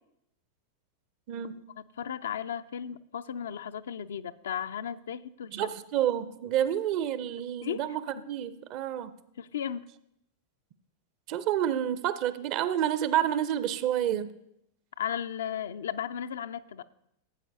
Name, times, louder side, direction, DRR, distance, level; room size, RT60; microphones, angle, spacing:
voice 1, 1.3-1.6 5.5-9.1 11.3-14.3, right 11 dB, 40° right, 0.6 m, -29 dB
voice 2, 2.0-5.6 7.6-7.8 9.4-9.8 15.0-16.8, left 9 dB, 65° left, 0.4 m, -35 dB
15.5 x 8.5 x 2.7 m
figure-of-eight pair, 90°, 0 cm